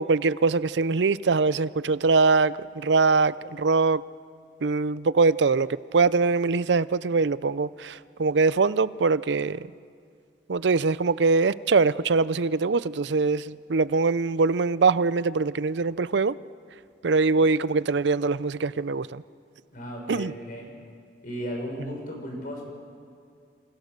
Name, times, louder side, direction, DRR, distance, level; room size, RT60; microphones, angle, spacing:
voice 1, 0.0-4.0 4.6-9.7 10.5-16.4 17.0-19.2 20.1-20.3, right 4 dB, 70° right, 18 dB, 0.6 m, -23 dB
voice 2, 19.7-20.7 21.2-22.6, equal, 50° left, 1 dB, 6.2 m, -35 dB
28.0 x 26.5 x 6.7 m, 2.3 s
head